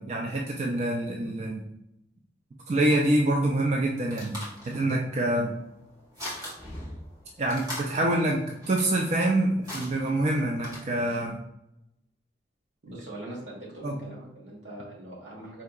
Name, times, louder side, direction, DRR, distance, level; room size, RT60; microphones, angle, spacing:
voice 1, 0.0-1.6 2.7-4.3 4.7-5.6 7.4-11.4 13.8-14.0, right 1 dB, 35° right, 0 dB, 0.3 m, -26 dB
sound 1, 3.6-11.3, left 1 dB, 20° right, 1.2 m, -42 dB
voice 2, 12.8-15.6, right 1 dB, 80° right, -3 dB, 1.3 m, -42 dB
4.3 x 2.8 x 2.3 m, 0.84 s
head